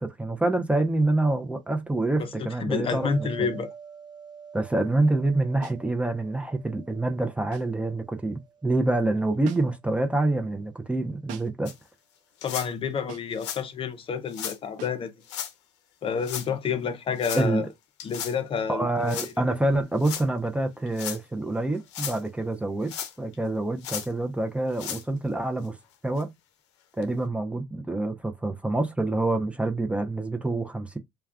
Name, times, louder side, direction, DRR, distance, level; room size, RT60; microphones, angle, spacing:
voice 1, 0.0-3.6 4.5-11.7 17.3-17.7 18.7-25.8 26.0-26.3 27.0-31.0, right 2 dB, 10° right, 0.5 m, -26 dB
voice 2, 2.2-3.7 12.4-15.1 16.0-17.7 18.0-19.1, left 6 dB, 40° left, 0.6 m, -29 dB
sound 1, 2.9-9.9 15.1-15.3, right 6 dB, 30° right, 1.0 m, -47 dB
sound 2, 5.6-5.9 7.5-7.8 9.4-9.9 11.3-11.7 13.1-13.4 14.8-15.1, right 8 dB, 70° right, 0.6 m, -45 dB
sound 3, 11.7-11.8 12.4-12.7 13.3-13.6 14.3-14.6 15.2-15.5 16.2-16.5 17.2-17.5 18.0-18.3 19.1-19.3 20.0-20.2 20.9-21.2 21.7-22.2 22.9-23.4 23.8-24.1 24.7-25.0 25.6-25.7 26.2-26.3 27.0-27.1, left 9 dB, 90° left, 0.5 m, -35 dB
2.2 x 2.2 x 3.5 m
supercardioid pair, 75°, 15 cm